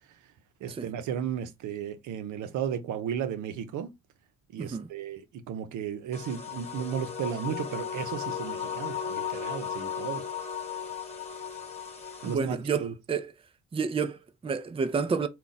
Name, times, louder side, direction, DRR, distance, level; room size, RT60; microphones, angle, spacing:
voice 1, 0.6-3.9 4.5-10.2 12.2-12.9, right 8 dB, 80° right, 0.7 m, -34 dB
voice 2, 4.6-4.9 12.2-13.3 13.7-15.3, right 5 dB, 20° right, 0.4 m, -30 dB
sound 1, 6.1-12.3, left 7 dB, 20° left, 1.2 m, -35 dB
3.7 x 2.3 x 4.0 m
cardioid pair, 90°, 30 cm